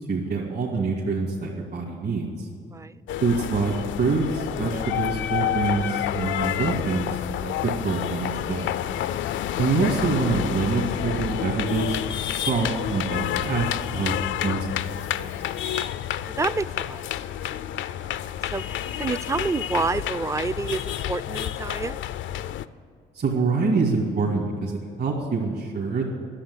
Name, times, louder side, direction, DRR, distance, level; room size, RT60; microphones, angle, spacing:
voice 1, 0.1-2.5 3.2-8.8 9.6-12.0 12.3-14.1 14.4-14.9 15.2-15.5 23.1-26.1, right 4 dB, 60° right, -3 dB, 2.2 m, -26 dB
voice 2, 2.7-3.0 5.7-6.0 9.3-9.4 16.2-17.1 17.5-17.6 18.2-22.0, right 3 dB, 15° right, 16 dB, 0.4 m, -29 dB
sound 1, 3.1-22.7, left 11 dB, 75° left, 0.5 m, -29 dB
11.5 x 7.7 x 9.6 m, 2.3 s
cardioid pair, 90°, 20 cm